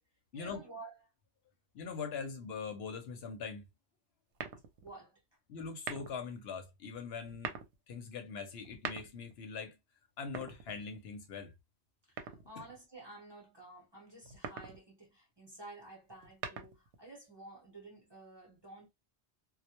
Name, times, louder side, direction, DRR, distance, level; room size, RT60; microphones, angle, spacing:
voice 1, 0.3-1.0 4.8-5.2 12.1-18.9, right 2 dB, 25° right, 0.8 m, -52 dB
voice 2, 1.7-3.6 5.5-7.5 7.9-9.8 10.2-11.5 12.6-12.7, left 5 dB, 70° left, 0.8 m, -42 dB
sound 1, 4.3-5.0 5.7-6.3 7.2-7.7 8.6-9.4 10.2-11.1 12.2-12.8 14.2-14.8 16.1-17.0, right 6 dB, 85° right, 0.9 m, -43 dB
2.2 x 2.0 x 2.8 m
omnidirectional pair, 1.2 m